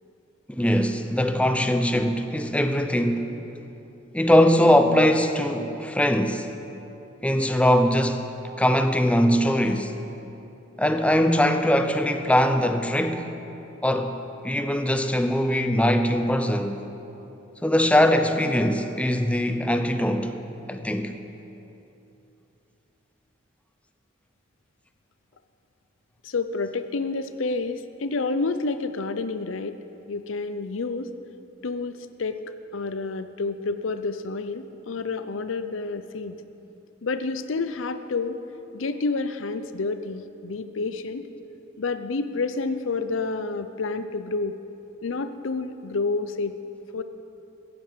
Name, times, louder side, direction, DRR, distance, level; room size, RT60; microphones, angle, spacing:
voice 1, 0.5-3.3 4.1-6.5 7.2-8.3 8.6-9.9 10.8-13.4 13.8-14.2 14.4-16.9 17.6-20.4 20.7-21.1, equal, 5° left, 7 dB, 0.7 m, -21 dB
voice 2, 26.2-29.8 30.1-31.1 31.6-32.4 32.7-36.4 37.0-38.4 38.7-41.3 41.8-44.5 45.0-46.5 46.9-47.0, left 3 dB, 85° left, 11 dB, 0.6 m, -29 dB
15.5 x 10.5 x 7.4 m, 2.9 s
head